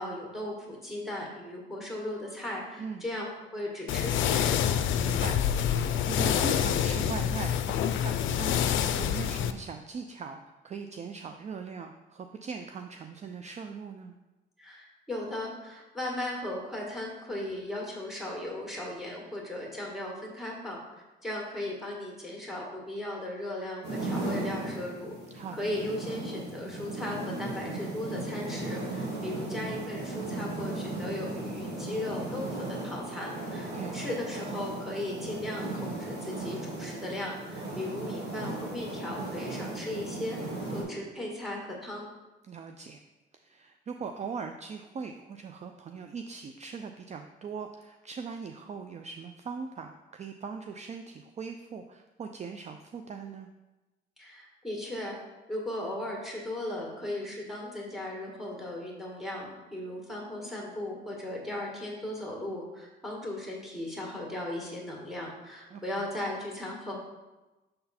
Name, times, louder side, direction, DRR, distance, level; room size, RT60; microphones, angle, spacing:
voice 1, 0.0-3.3 3.5-4.7 14.6-20.8 21.2-25.1 25.5-40.4 40.7-42.1 54.2-55.1 55.5-66.9, left 1 dB, ahead, -2 dB, 1.9 m, -37 dB
sound 1, 3.9-9.5, left 9 dB, 75° left, 0.4 m, -27 dB
voice 2, 4.9-10.4 10.6-14.1 25.3-25.7 33.7-34.0 42.5-43.0 43.4-53.5 65.7-66.0, right 5 dB, 35° right, 6 dB, 0.4 m, -40 dB
sound 2, 23.8-40.8, right 2 dB, 60° right, 2.2 m, -36 dB
6.5 x 3.9 x 4.3 m, 1.1 s
cardioid pair, 90°, 20 cm